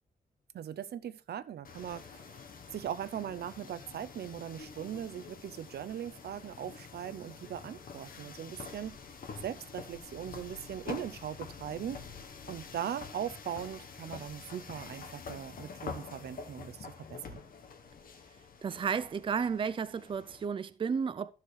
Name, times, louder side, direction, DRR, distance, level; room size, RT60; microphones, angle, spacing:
voice 1, 0.5-2.4 2.7-9.0 9.4-12.0 12.5-17.4, right 10 dB, 85° right, 0.5 m, -40 dB
sound 1, 1.6-20.5, left 5 dB, 60° left, 1.1 m, -47 dB
voice 2, 18.6-21.3, right 6 dB, 30° right, 0.4 m, -32 dB
13.5 x 6.5 x 3.2 m
wide cardioid pair, 180°, 16 cm